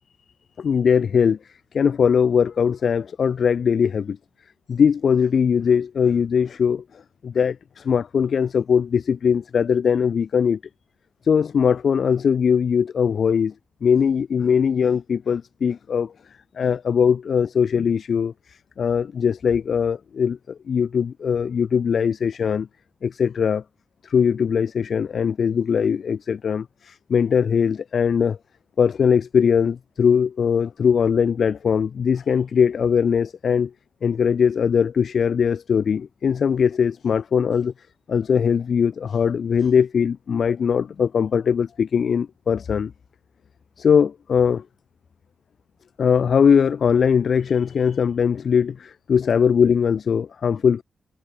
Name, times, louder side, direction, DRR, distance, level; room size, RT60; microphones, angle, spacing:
voice 1, 0.6-1.4 1.7-4.2 4.7-10.6 11.2-13.5 13.8-16.1 16.6-22.7 23.0-23.6 24.0-28.4 28.8-33.7 34.0-37.7 38.1-42.9 43.8-44.6 46.0-50.8, left 7 dB, 55° left, 1.4 m, -20 dB
wide cardioid pair, 160°, 0 cm